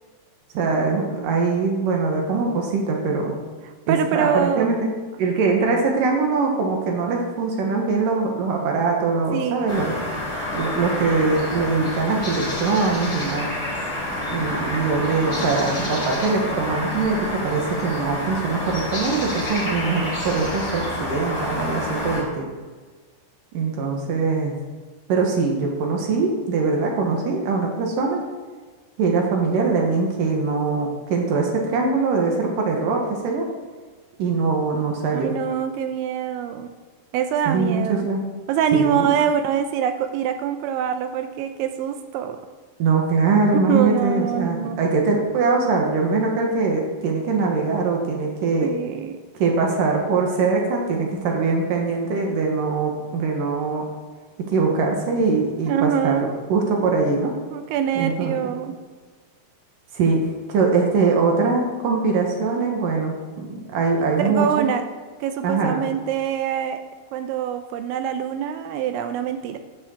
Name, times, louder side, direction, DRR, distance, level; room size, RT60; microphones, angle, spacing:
voice 1, 0.5-3.3 3.9-4.9 5.2-9.9 10.5-13.5 14.3-22.5 23.5-24.6 25.1-28.2 29.0-33.5 34.2-35.3 37.5-38.2 38.7-39.1 42.8-48.7 49.4-53.9 54.5-56.2 56.5-57.3 57.9-58.3 59.9-60.2 60.5-64.7 65.4-65.8, right 4 dB, 65° right, 1 dB, 2.2 m, -22 dB
voice 2, 3.9-4.7 9.3-9.7 35.1-36.7 37.1-38.1 38.5-42.4 43.5-44.9 48.6-49.2 55.7-56.4 57.5-58.7 64.2-64.8 65.2-66.8 67.1-69.6, right 9 dB, 80° right, 8 dB, 2.8 m, -24 dB
sound 1, 9.7-22.2, left 1 dB, 15° left, 3.6 m, -28 dB
11.5 x 6.3 x 7.1 m, 1.4 s
omnidirectional pair, 5.7 m